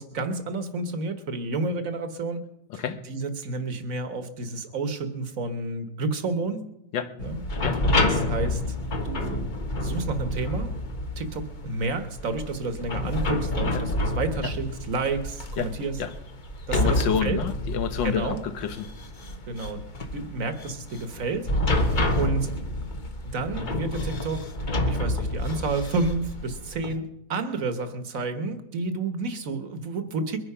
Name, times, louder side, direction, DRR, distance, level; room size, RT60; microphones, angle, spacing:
voice 1, 0.0-2.4 2.7-6.6 7.2-7.4 8.1-8.8 9.0-9.5 9.8-10.7 11.2-16.0 16.7-17.4 18.0-18.4 19.5-19.8 20.1-21.5 21.8-22.5 23.2-24.5 24.9-30.4, right 3 dB, 50° right, 9 dB, 1.6 m, -30 dB
sound 1, 7.2-27.0, left 1 dB, 30° left, 0.9 m, -29 dB
voice 2, 16.7-18.9, left 7 dB, 75° left, 10 dB, 1.7 m, -29 dB
22.0 x 9.8 x 5.7 m, 0.85 s
omnidirectional pair, 2.1 m